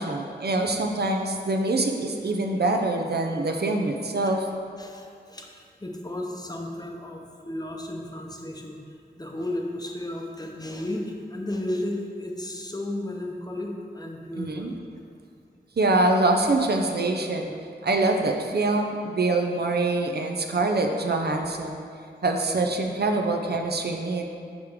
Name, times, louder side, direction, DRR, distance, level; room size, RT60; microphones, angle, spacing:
voice 1, 0.0-4.5 14.4-14.7 15.8-17.5 17.8-21.8 22.2-24.2, right 2 dB, 65° right, 3 dB, 0.6 m, -24 dB
voice 2, 4.8-8.8 9.2-14.7, left 1 dB, 20° left, 0 dB, 0.7 m, -34 dB
6.3 x 3.6 x 4.6 m, 2.3 s
wide cardioid pair, 60°, 18 cm